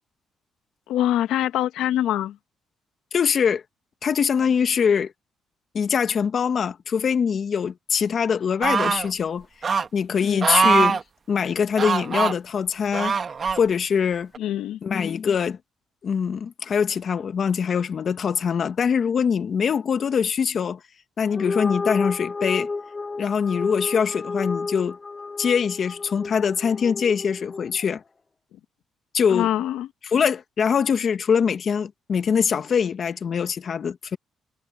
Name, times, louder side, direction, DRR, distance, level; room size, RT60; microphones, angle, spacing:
voice 1, 0.9-2.4 10.2-10.4 14.4-14.8 29.3-29.9, left 12 dB, 85° left, 1.3 m, -24 dB
voice 2, 3.1-3.6 4.0-5.1 5.7-9.5 9.9-11.0 11.3-13.2 13.5-14.3 14.8-15.6 16.0-20.8 21.2-22.7 23.2-25.0 25.4-28.0 29.1-29.5 30.0-34.2, left 6 dB, 50° left, 1.5 m, -23 dB
sound 1, 8.6-9.1 9.6-9.9 10.4-11.0 11.8-12.3 12.9-13.6 14.3-14.4, right 5 dB, 40° right, 1.2 m, -22 dB
sound 2, 21.3-27.8, left 3 dB, 30° left, 1.0 m, -31 dB
cardioid pair, 90°, 0 cm